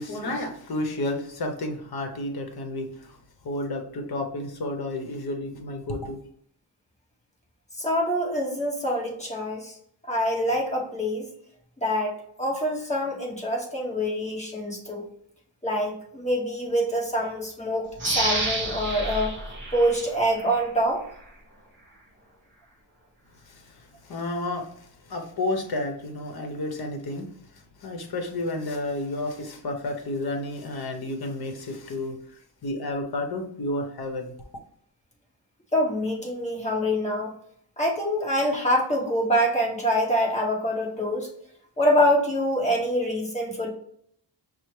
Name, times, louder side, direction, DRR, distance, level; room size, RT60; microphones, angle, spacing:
voice 1, 0.0-3.2 3.4-6.2 23.5-27.3 27.8-34.3, left 2 dB, 55° left, 4 dB, 0.8 m, -31 dB
voice 2, 7.8-9.8 10.1-11.3 11.8-15.0 15.6-17.9 18.1-19.3 19.7-21.0 35.7-37.3 37.8-41.3 41.8-43.7, equal, 15° left, -2 dB, 1.0 m, -25 dB
sound 1, 18.0-20.7 21.1-21.2, right 2 dB, 25° right, 1.0 m, -30 dB
5.5 x 2.0 x 3.1 m, 0.68 s
wide cardioid pair, 140°, 44 cm